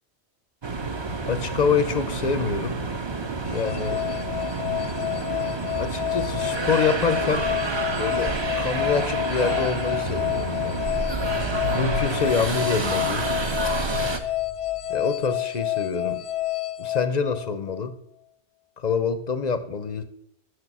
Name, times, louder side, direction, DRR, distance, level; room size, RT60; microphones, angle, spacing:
sound 1, 0.6-14.2, right 3 dB, 35° right, 0.5 m, -29 dB
voice 1, 1.3-2.8 3.5-4.0 5.8-7.5 7.9-10.8 11.7-13.3 14.9-16.2 16.8-18.0 18.8-20.0, left 5 dB, 50° left, 12 dB, 0.6 m, -26 dB
sound 2, 3.5-17.9, left 15 dB, 90° left, 1.0 m, -29 dB
sound 3, 9.6-15.3 15.6-15.7, left 2 dB, 55° right, 2.4 m, -36 dB
6.6 x 6.4 x 6.0 m, 0.77 s
omnidirectional pair, 1.2 m